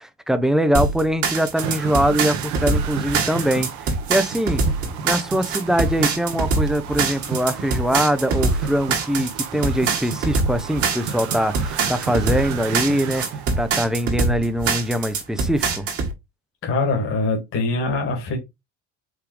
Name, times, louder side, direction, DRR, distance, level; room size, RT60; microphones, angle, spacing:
voice 1, 0.3-4.6 5.0-13.2 13.5-15.9, equal, ahead, 0.4 m, -22 dB
sound 1, 0.7-16.1, right 4 dB, 50° right, 1.7 m, -23 dB
sound 2, 1.6-13.9, right 7 dB, 75° right, 1.0 m, -33 dB
voice 2, 16.6-18.4, left 3 dB, 45° left, 1.7 m, -23 dB
4.9 x 3.5 x 3.1 m
cardioid pair, 145°, 29 cm